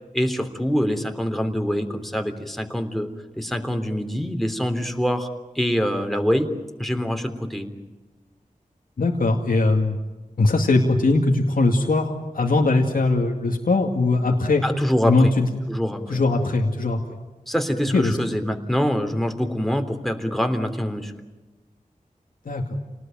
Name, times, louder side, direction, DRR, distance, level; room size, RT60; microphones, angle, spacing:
voice 1, 0.1-5.3 5.5-6.5 6.8-7.7 14.6-15.3 15.7-16.2 17.5-21.1, equal, ahead, 5 dB, 3.4 m, -25 dB
voice 2, 9.0-10.0 10.4-14.6 15.1-15.4 16.1-17.0 17.9-18.2 22.5-22.8, left 2 dB, 90° left, 0 dB, 2.3 m, -20 dB
29.0 x 19.5 x 9.1 m, 1.2 s
wide cardioid pair, 60°, 14 cm